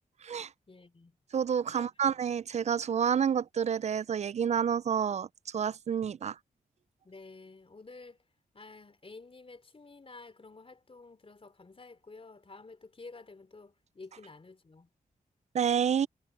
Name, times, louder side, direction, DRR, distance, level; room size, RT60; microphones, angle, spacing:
voice 1, 0.7-1.2 1.7-1.9 7.0-8.2 8.5-14.9, left 3 dB, 40° left, 3.5 m, -51 dB
voice 2, 1.3-6.4 15.5-16.1, right 8 dB, 50° right, 0.4 m, -29 dB
cardioid pair, 60°, 15 cm